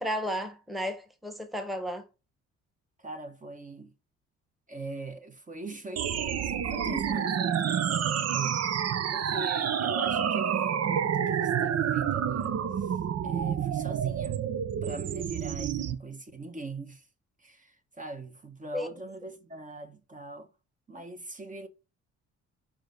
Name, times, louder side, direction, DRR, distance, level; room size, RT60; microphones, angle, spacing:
voice 1, 0.0-2.0 18.7-18.9, equal, ahead, 1.2 m, -33 dB
voice 2, 3.0-3.9 4.7-8.7 9.1-13.0 13.2-14.4 14.8-17.1 17.4-20.5 20.9-21.7, right 2 dB, 25° right, 1.2 m, -42 dB
sound 1, 6.0-16.0, right 8 dB, 55° right, 0.8 m, -28 dB
5.2 x 5.0 x 3.8 m
cardioid pair, 90°, 30 cm